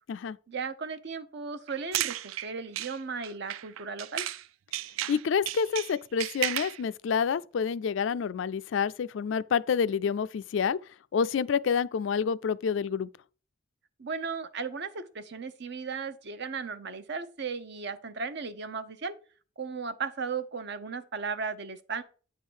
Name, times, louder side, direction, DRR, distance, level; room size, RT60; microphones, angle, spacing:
voice 1, 0.5-4.2 14.0-19.1 19.6-22.0, right 5 dB, 60° right, 0.7 m, -36 dB
sound 1, 1.7-4.5 4.7-6.8, right 13 dB, 90° right, 0.3 m, -34 dB
voice 2, 5.1-10.8 11.1-13.1, left 6 dB, 65° left, 0.4 m, -28 dB
9.2 x 3.7 x 6.2 m
head